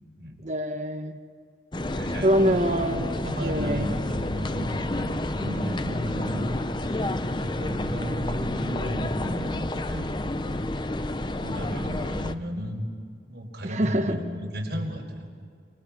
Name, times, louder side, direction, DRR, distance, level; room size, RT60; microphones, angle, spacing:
voice 1, 0.4-1.2 2.2-3.1 3.4-3.9 13.6-14.2, equal, 40° right, 4 dB, 1.3 m, -25 dB
sound 1, 1.7-12.3, left 1 dB, 25° left, 0.7 m, -30 dB
voice 2, 1.8-2.7 3.2-7.0 7.3-10.1 10.4-10.9 11.2-12.8 13.3-15.5, equal, 65° right, 1 dB, 4.8 m, -34 dB
29.0 x 27.5 x 6.1 m, 2.1 s
head